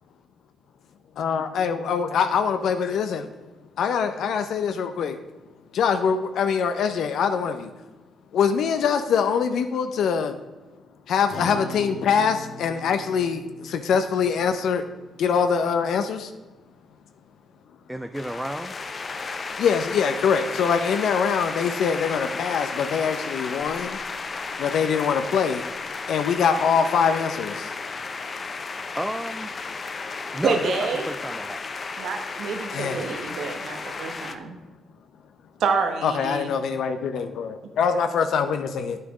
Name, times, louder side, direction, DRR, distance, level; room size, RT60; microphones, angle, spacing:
voice 1, 1.2-3.3 3.8-5.2 5.7-7.7 8.3-10.3 11.1-14.8 15.2-16.3 19.6-24.0 24.6-25.6 26.1-27.7 32.7-33.1 36.0-39.0, left 6 dB, 70° left, 8 dB, 0.6 m, -23 dB
Acoustic guitar, 11.3-16.0, equal, 55° left, 2.4 m, -41 dB
voice 2, 17.9-18.8 29.0-29.6 30.3-30.7 31.1-31.6, right 1 dB, 5° right, 8 dB, 0.4 m, -31 dB
sound 1, 18.1-34.4, left 4 dB, 35° left, 0.7 m, -33 dB
voice 3, 30.4-31.1 32.0-34.6 35.6-36.5, right 4 dB, 70° right, 4 dB, 1.1 m, -27 dB
9.3 x 6.7 x 4.9 m, 1.1 s
cardioid pair, 90°, 0 cm